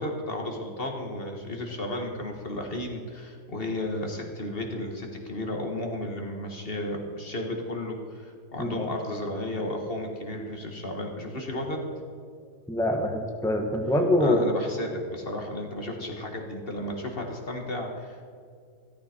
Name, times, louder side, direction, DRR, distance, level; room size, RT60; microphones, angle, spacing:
voice 1, 0.0-11.8 14.2-18.3, left 1 dB, 35° left, 2 dB, 1.5 m, -33 dB
voice 2, 12.7-14.4, left 1 dB, 5° left, 2 dB, 0.9 m, -24 dB
14.0 x 13.5 x 4.3 m, 2.2 s
omnidirectional pair, 1.8 m